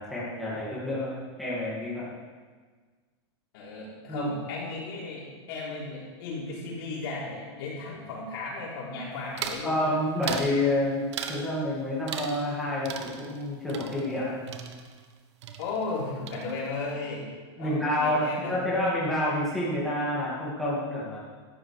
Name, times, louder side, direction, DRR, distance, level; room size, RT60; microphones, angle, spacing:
voice 1, 0.0-2.2 4.1-4.3 9.6-14.4 17.6-21.2, left 1 dB, ahead, -9 dB, 2.4 m, -28 dB
voice 2, 3.5-9.8 15.6-17.3 17.6-18.6, left 3 dB, 55° left, -5 dB, 4.0 m, -35 dB
sound 1, 9.4-9.7 10.2-10.6 11.1-11.5 12.1-12.6 12.8-15.2 15.4-16.0 16.3-16.8, right 7 dB, 80° right, 1.4 m, -37 dB
18.0 x 13.0 x 3.5 m, 1.5 s
supercardioid pair, 165°, 14 cm